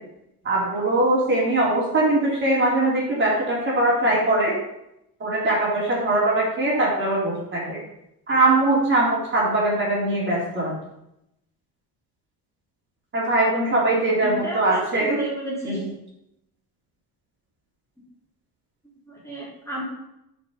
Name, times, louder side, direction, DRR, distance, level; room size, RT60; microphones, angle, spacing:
voice 1, 0.4-4.6 5.2-7.8 8.3-10.7 13.1-15.2 15.6-15.8, right 2 dB, 30° right, -5 dB, 3.8 m, -21 dB
voice 2, 13.9-15.9 18.0-18.1 19.1-19.8, right 1 dB, 10° left, -6 dB, 3.7 m, -33 dB
9.7 x 5.5 x 7.2 m, 0.84 s
cardioid pair, 135°, 37 cm